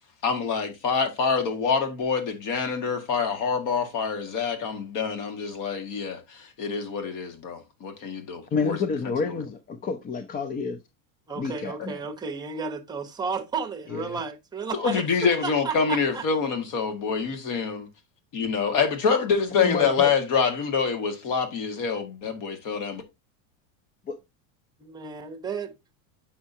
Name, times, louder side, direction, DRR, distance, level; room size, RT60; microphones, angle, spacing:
voice 1, 0.2-8.8 14.7-17.9 18.3-23.0, left 5 dB, 50° left, 1.9 m, -26 dB
voice 2, 8.5-10.8 11.4-12.0 13.9-14.2 19.5-20.1 24.1-24.2, left 5 dB, 20° left, 0.5 m, -29 dB
voice 3, 11.3-16.2 18.6-18.8 24.8-25.7, right 5 dB, 10° right, 0.9 m, -33 dB
8.5 x 5.8 x 2.8 m
supercardioid pair, 135°, 42 cm